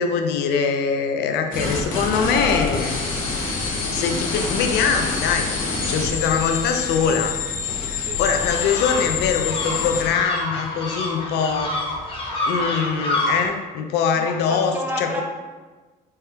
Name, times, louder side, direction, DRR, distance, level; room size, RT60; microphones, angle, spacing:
voice 1, 0.0-3.0 3.9-5.5 5.8-7.4 8.2-11.8 12.4-15.2, left 6 dB, 80° left, 5 dB, 0.5 m, -23 dB
sound 1, 1.5-10.1, left 4 dB, 55° left, 1.0 m, -26 dB
voice 2, 7.8-8.2 8.6-8.7 14.2-15.2, equal, 10° right, -1 dB, 0.6 m, -32 dB
sound 2, 8.4-13.5, left 1 dB, 30° left, 0.8 m, -27 dB
4.3 x 2.3 x 3.4 m, 1.3 s
cardioid pair, 110°, 17 cm